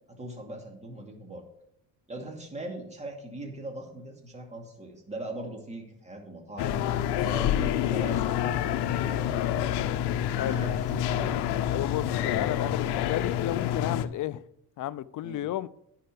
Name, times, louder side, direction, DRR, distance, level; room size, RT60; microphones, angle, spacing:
voice 1, 0.2-1.4 2.1-6.8 7.2-9.4 10.3-11.5 12.2-12.7 15.2-15.4, right 1 dB, 15° right, 2.5 m, -40 dB
sound 1, 6.6-14.1, left 10 dB, 75° left, 0.8 m, -28 dB
voice 2, 11.7-14.4 14.8-15.7, left 13 dB, 50° left, 0.6 m, -32 dB
10.0 x 5.7 x 6.7 m
cardioid pair, 105°, 40 cm